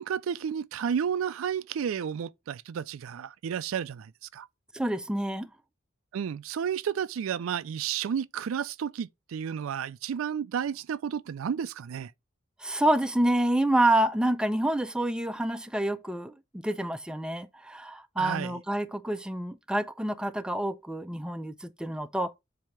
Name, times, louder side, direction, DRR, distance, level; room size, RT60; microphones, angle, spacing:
voice 1, 0.0-4.5 6.1-12.1 18.2-18.6, right 8 dB, 85° right, 0.4 m, -32 dB
voice 2, 4.7-5.5 12.6-22.3, right 1 dB, 5° right, 0.4 m, -28 dB
7.4 x 2.7 x 4.6 m
head